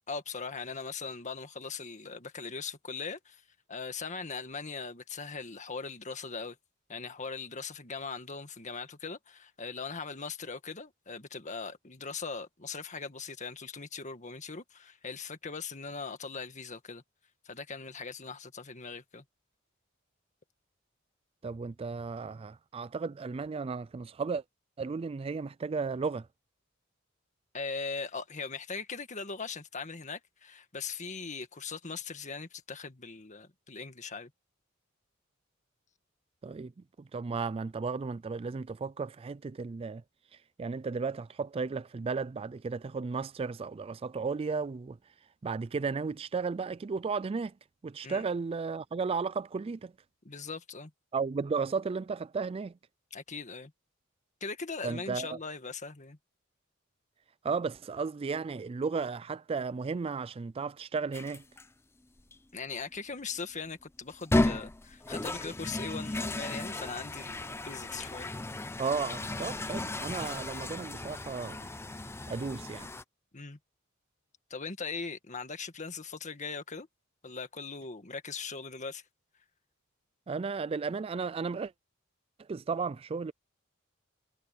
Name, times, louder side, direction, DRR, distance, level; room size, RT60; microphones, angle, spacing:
voice 1, 0.1-3.4 3.7-6.6 6.9-17.0 17.5-19.2 27.5-34.3 48.0-48.2 50.2-50.9 53.1-53.7 54.4-56.2 62.5-68.3 73.3-73.6 74.5-76.9 77.2-79.0, left 4 dB, 35° left, 1.7 m, -40 dB
voice 2, 21.4-24.4 24.8-26.3 36.4-36.7 37.1-40.0 40.6-45.0 45.4-47.5 47.8-49.9 51.1-52.7 54.8-55.4 57.4-61.4 68.8-71.7 72.3-72.9 80.3-81.7 82.5-83.3, right 5 dB, 30° right, 0.3 m, -34 dB
sound 1, 61.1-61.6 62.3-62.4 64.1-73.0, left 2 dB, 15° left, 0.6 m, -34 dB
head